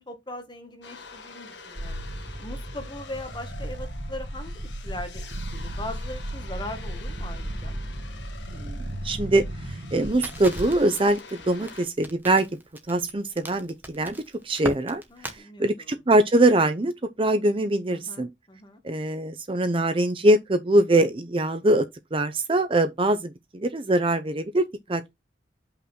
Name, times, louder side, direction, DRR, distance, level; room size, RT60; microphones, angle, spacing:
voice 1, 0.0-2.0 2.4-7.7 15.1-16.0 17.9-18.8 24.9-25.0, left 1 dB, 25° left, 1.6 m, -40 dB
sound 1, 0.8-11.8, left 4 dB, 65° left, 1.6 m, -45 dB
sound 2, 1.8-11.1, right 1 dB, 75° right, 2.3 m, -35 dB
voice 2, 9.0-9.4 9.9-12.5 12.9-14.2 14.4-15.0 15.3-16.9 17.2-18.3 18.8-21.9 22.1-25.1, right 1 dB, 30° right, 0.6 m, -23 dB
Crackle, 10.2-15.4, right 1 dB, 10° right, 1.2 m, -38 dB
5.6 x 3.8 x 5.9 m
head